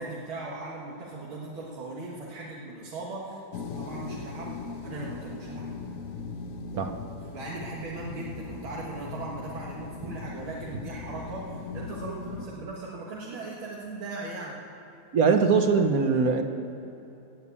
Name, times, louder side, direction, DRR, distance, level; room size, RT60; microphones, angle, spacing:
voice 1, 0.0-4.5 4.8-5.8 7.3-14.6, right 2 dB, 90° right, -4 dB, 2.4 m, -38 dB
sound 1, 3.5-12.5, left 4 dB, 55° left, 1.0 m, -39 dB
voice 2, 15.1-16.4, right 5 dB, 55° right, 6 dB, 1.1 m, -21 dB
18.0 x 7.1 x 8.4 m, 3.0 s
omnidirectional pair, 2.2 m